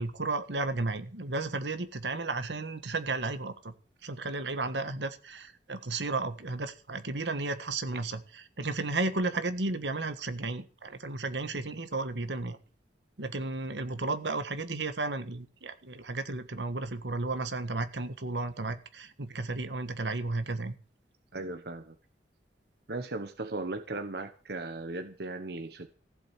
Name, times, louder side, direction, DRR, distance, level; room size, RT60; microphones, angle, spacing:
voice 1, 0.0-3.7 4.0-8.2 8.6-12.6 13.2-20.7, right 3 dB, 80° right, 10 dB, 1.6 m, -33 dB
voice 2, 21.3-21.9 22.9-25.9, right 2 dB, 65° right, 7 dB, 1.2 m, -37 dB
15.5 x 7.8 x 8.3 m, 0.39 s
head